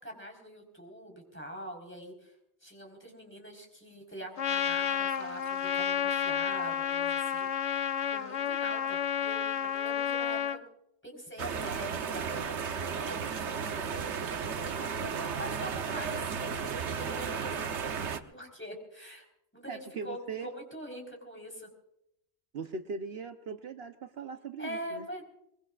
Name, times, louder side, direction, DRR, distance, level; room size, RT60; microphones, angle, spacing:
voice 1, 0.0-2.3 2.6-7.5 8.1-10.6 11.0-14.6 14.9-17.6 18.2-19.3 19.5-19.8 20.0-21.7 24.6-25.2, equal, 10° left, 1 dB, 4.1 m, -44 dB
Trumpet, 4.4-10.6, left 9 dB, 85° left, 1.2 m, -31 dB
sound 1, 11.4-18.2, right 6 dB, 85° right, 1.2 m, -34 dB
voice 2, 19.7-20.5 22.5-25.1, right 5 dB, 65° right, 7 dB, 1.0 m, -39 dB
22.5 x 22.5 x 2.4 m, 0.77 s
omnidirectional pair, 1.1 m